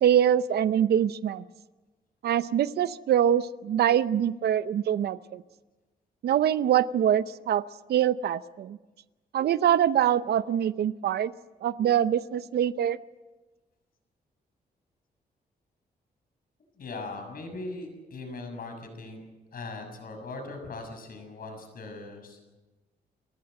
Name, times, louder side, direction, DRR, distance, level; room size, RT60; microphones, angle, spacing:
voice 1, 0.0-1.4 2.2-5.4 6.2-7.6 7.9-8.8 9.3-11.3 11.6-13.0, right 10 dB, 80° right, 15 dB, 0.7 m, -24 dB
voice 2, 16.7-19.2 19.5-22.5, left 3 dB, 65° left, 5 dB, 6.8 m, -39 dB
29.5 x 14.5 x 7.8 m, 1.2 s
cardioid pair, 110°, 16 cm